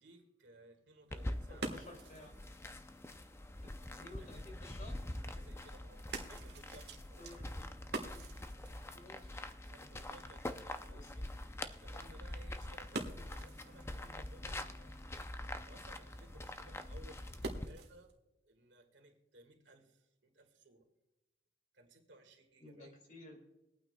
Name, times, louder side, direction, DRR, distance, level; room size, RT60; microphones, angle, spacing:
voice 1, 0.0-2.0 4.2-4.4 5.2-7.3 9.6-11.3 11.5-14.9 15.6-20.9 21.7-22.9, right 1 dB, 85° right, 3 dB, 1.9 m, -60 dB
sound 1, 1.0-18.2, right 2 dB, 65° right, 1.5 m, -50 dB
sound 2, 1.1-17.7, left 1 dB, 15° left, 0.5 m, -45 dB
voice 2, 1.5-2.3 4.0-5.0 7.2-7.7 8.9-9.4 10.9-11.1 22.6-23.4, left 1 dB, 45° left, 2 dB, 2.6 m, -54 dB
23.5 x 9.0 x 2.3 m, 0.98 s
head